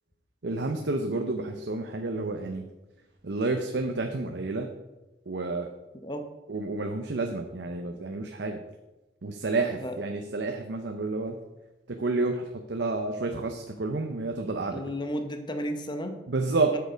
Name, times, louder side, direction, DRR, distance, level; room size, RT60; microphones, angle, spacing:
voice 1, 0.4-2.6 3.2-4.7 5.3-5.7 6.5-8.6 9.2-11.4 12.0-14.8 16.3-16.8, right 3 dB, 70° right, 4 dB, 0.7 m, -30 dB
voice 2, 14.7-16.2 16.7-16.8, equal, 25° left, 7 dB, 0.9 m, -33 dB
8.2 x 6.8 x 5.1 m, 1.1 s
head